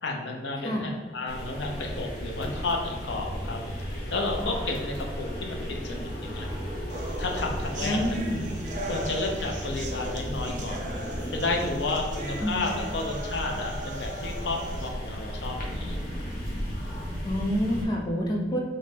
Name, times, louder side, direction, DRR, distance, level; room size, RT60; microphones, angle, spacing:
voice 1, 0.0-6.5 7.2-8.0 8.9-11.0 11.3-16.0, left 3 dB, 75° left, 2 dB, 0.5 m, -32 dB
sound 1, 1.3-17.9, equal, 55° left, 0.9 m, -35 dB
sound 2, 6.9-14.9, right 1 dB, 45° right, 0.4 m, -38 dB
voice 2, 7.8-8.5 12.4-12.6 17.2-18.6, equal, 20° left, -1 dB, 0.4 m, -28 dB
3.8 x 2.2 x 3.2 m, 1.5 s
head